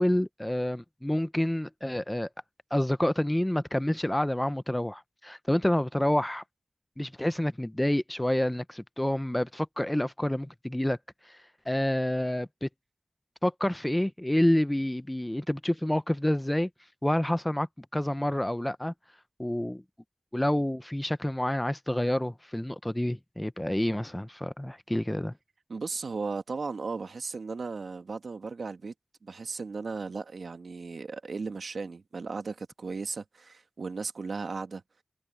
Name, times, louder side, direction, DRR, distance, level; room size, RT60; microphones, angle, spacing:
voice 1, 0.0-2.3 2.7-6.4 7.0-11.0 11.3-11.4 11.7-12.7 13.4-16.7 17.0-18.9 19.4-19.8 20.3-25.3, left 1 dB, 10° left, 0.6 m, -28 dB
voice 2, 25.7-28.9 29.2-34.8, right 4 dB, 75° right, 1.6 m, -36 dB
wide cardioid pair, 80°, 0 cm